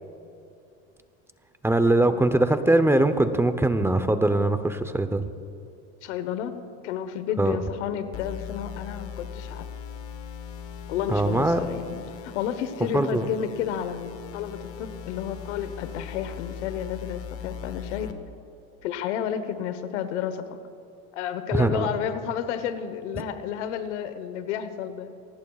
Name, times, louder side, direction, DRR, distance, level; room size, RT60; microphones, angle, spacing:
voice 1, 1.6-5.2 7.4-7.6 11.1-11.6 12.8-13.2 21.5-21.9, right 2 dB, 5° right, 9 dB, 0.8 m, -22 dB
voice 2, 6.0-6.5 6.8-9.7 10.9-18.1 18.8-20.5 21.1-25.1, left 9 dB, 90° left, 11 dB, 1.2 m, -31 dB
sound 1, 8.1-18.1, left 7 dB, 40° left, 1.2 m, -39 dB
24.0 x 19.0 x 2.4 m, 2.6 s
supercardioid pair, 115°, 34 cm